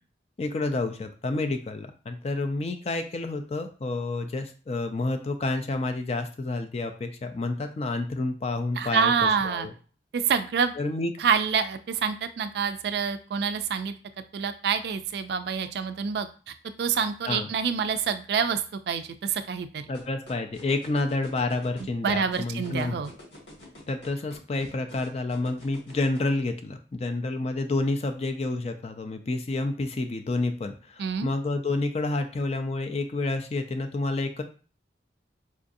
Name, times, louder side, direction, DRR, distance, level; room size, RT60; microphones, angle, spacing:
voice 1, 0.4-9.7 10.8-11.1 17.2-17.5 19.9-23.0 23.9-34.4, left 2 dB, 35° left, 6 dB, 0.4 m, -29 dB
voice 2, 8.8-9.7 10.1-10.7 11.2-13.9 14.3-19.8 22.0-23.1 31.0-31.3, right 6 dB, 65° right, 10 dB, 0.3 m, -27 dB
sound 1, 19.9-26.2, left 1 dB, 85° left, 1.8 m, -47 dB
4.7 x 2.5 x 2.6 m, 0.38 s
head